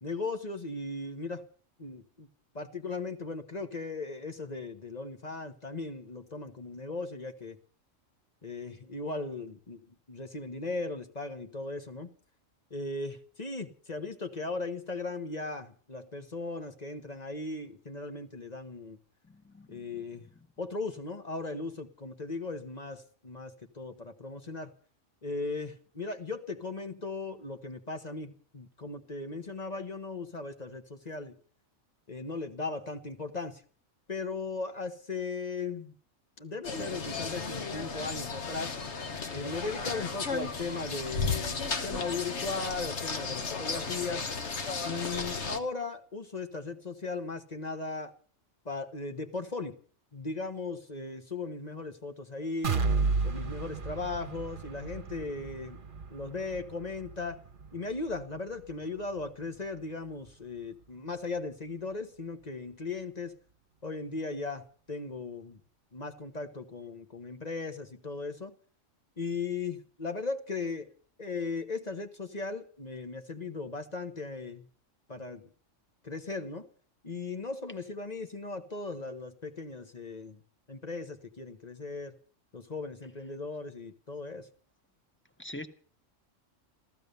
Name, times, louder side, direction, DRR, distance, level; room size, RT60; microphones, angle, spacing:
voice 1, 0.0-1.4 1.8-2.3 2.5-7.6 8.4-12.1 12.7-19.0 19.7-20.3 20.6-24.7 25.2-31.4 32.1-33.6 34.1-35.9 36.4-38.7 39.3-44.3 44.8-48.1 48.6-49.8 50.1-52.8 53.2-55.8 56.1-57.4 57.7-63.3 63.8-65.6 65.9-68.5 69.2-70.9 71.2-74.7 75.1-75.4 76.0-76.7 77.0-80.4 80.7-82.1 82.5-84.5, left 3 dB, 35° left, 7 dB, 1.4 m, -37 dB
voice 2, 19.2-20.0 85.4-85.7, left 1 dB, 10° left, 7 dB, 1.2 m, -44 dB
sound 1, 36.6-45.6, left 4 dB, 60° left, 1.5 m, -34 dB
sound 2, 52.6-60.4 60.8-60.9 61.4-61.5, right 4 dB, 45° right, 1.2 m, -34 dB
14.5 x 14.5 x 6.8 m, 0.43 s
omnidirectional pair, 1.3 m